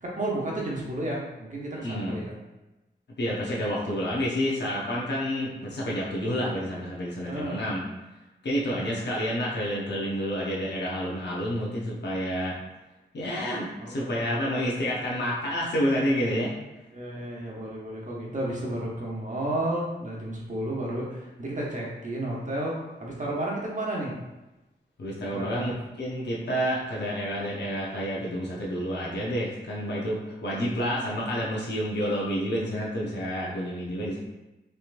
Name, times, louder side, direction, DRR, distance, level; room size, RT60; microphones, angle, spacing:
voice 1, 0.0-2.3 7.3-7.6 8.6-8.9 13.8-14.8 16.9-24.1 25.3-25.7, right 1 dB, 45° right, -4 dB, 1.0 m, -32 dB
voice 2, 1.8-2.2 3.2-7.8 8.4-12.6 13.1-16.5 25.0-34.2, equal, 70° left, -5 dB, 0.8 m, -29 dB
3.3 x 2.9 x 2.5 m, 1.0 s
cardioid pair, 60°, 18 cm